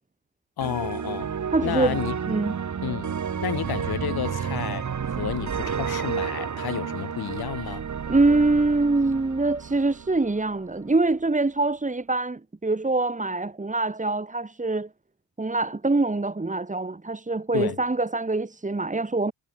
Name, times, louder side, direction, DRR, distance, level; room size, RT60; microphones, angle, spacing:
voice 1, 0.6-1.3 1.6-2.2 2.8-7.9 17.5-17.8, left 10 dB, 65° left, 5.3 m, -31 dB
sound 1, 0.6-10.7, right 7 dB, 45° right, 3.2 m, -31 dB
voice 2, 1.5-2.0 2.3-2.5 8.1-14.9 15.4-19.3, right 3 dB, 20° right, 3.8 m, -24 dB
cardioid pair, 75°, 39 cm